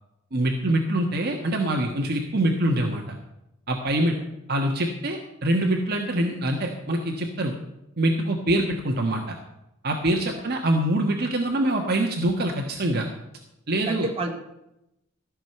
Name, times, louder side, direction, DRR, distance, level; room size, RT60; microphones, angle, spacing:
voice 1, 0.3-3.2 3.7-4.2 4.5-7.5 8.0-9.4 9.8-13.1 13.7-14.1, right 1 dB, 50° right, 2 dB, 1.4 m, -24 dB
voice 2, 3.9-4.3 10.1-10.4 13.9-14.3, right 2 dB, 30° right, 0 dB, 2.4 m, -32 dB
14.5 x 6.3 x 9.0 m, 0.87 s
head